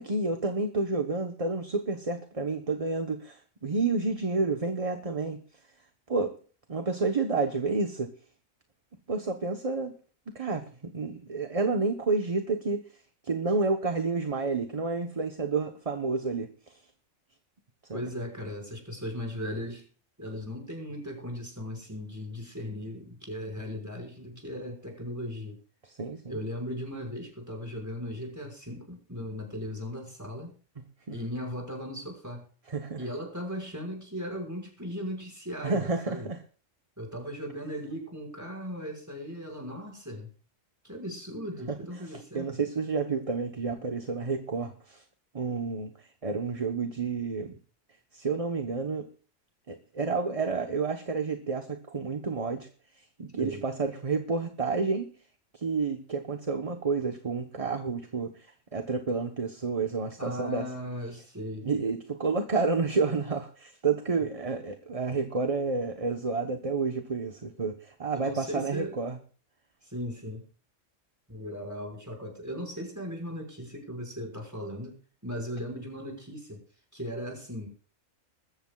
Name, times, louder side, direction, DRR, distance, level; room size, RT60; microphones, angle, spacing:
voice 1, 0.0-5.4 6.1-6.3 6.7-8.1 9.1-9.9 10.3-12.9 13.2-16.8 17.9-18.0 25.8-26.4 31.1-31.2 32.7-33.0 35.6-36.4 41.7-41.8 42.0-45.0 45.3-47.6 48.1-49.1 49.7-52.7 52.9-55.1 55.5-58.5 58.7-60.7 61.6-69.2, right 4 dB, 30° right, 6 dB, 1.0 m, -30 dB
voice 2, 17.9-19.8 20.2-25.6 26.3-30.5 31.1-32.5 33.0-36.3 37.0-40.3 40.8-42.5 53.4-53.6 60.2-61.7 68.1-69.0 69.8-70.4 71.3-75.0 75.2-76.6 76.9-77.7, equal, 15° right, 2 dB, 5.5 m, -37 dB
21.5 x 14.0 x 2.3 m, 0.41 s
omnidirectional pair, 1.3 m